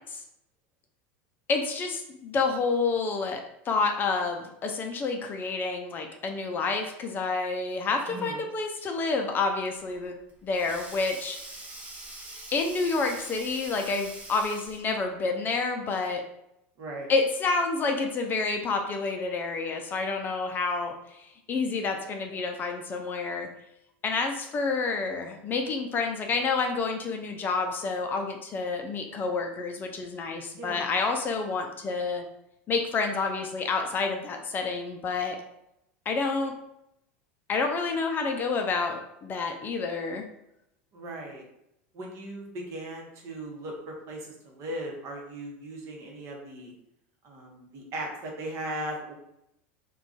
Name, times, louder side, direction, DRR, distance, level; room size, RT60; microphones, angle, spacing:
voice 1, 1.5-10.2 10.4-11.4 12.5-16.2 17.1-23.5 24.0-32.2 32.7-35.4 36.1-36.5 37.5-40.2, left 4 dB, 30° left, 4 dB, 0.4 m, -29 dB
voice 2, 8.1-8.4 16.8-17.1 30.6-30.9 40.9-41.4 41.9-46.7 47.2-49.1, right 1 dB, 50° right, 0 dB, 0.9 m, -38 dB
Sink (filling or washing), 9.9-15.0, right 2 dB, 20° right, 0.8 m, -44 dB
2.4 x 2.3 x 3.7 m, 0.81 s
supercardioid pair, 115°, 7 cm